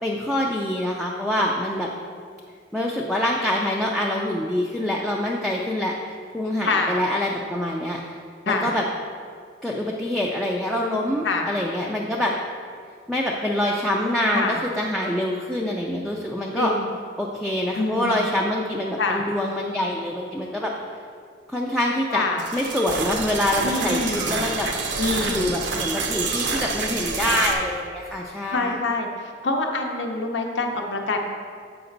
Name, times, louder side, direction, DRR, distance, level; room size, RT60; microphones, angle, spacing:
voice 1, 0.0-1.9 2.7-8.2 8.5-8.9 9.6-12.3 13.1-16.7 17.2-20.7 21.5-22.2 22.5-24.7 25.2-28.8, left 1 dB, ahead, -3 dB, 0.4 m, -25 dB
voice 2, 16.6-16.9 17.8-18.2 19.0-19.2 22.1-22.4 23.6-24.4 25.0-25.5 28.5-31.2, left 3 dB, 75° left, 2 dB, 0.7 m, -25 dB
sound 1, 22.4-27.5, right 4 dB, 70° right, 0.7 m, -27 dB
7.8 x 5.1 x 3.9 m, 2.2 s
head